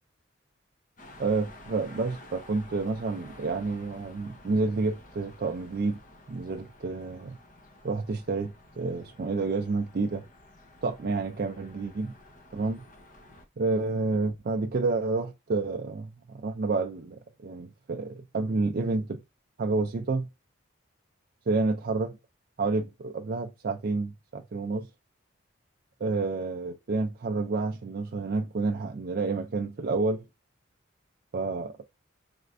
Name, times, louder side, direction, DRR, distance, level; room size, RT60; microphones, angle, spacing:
sound 1, 1.0-13.4, left 1 dB, 40° left, 0.7 m, -52 dB
voice 1, 1.2-6.0 6.3-7.4 7.8-10.2 10.8-12.1 12.5-12.8 13.6-19.2 19.6-20.3 21.5-22.2 22.6-24.9 26.0-30.2 31.3-31.8, right 3 dB, 50° right, 0.4 m, -29 dB
4.3 x 3.3 x 2.5 m
head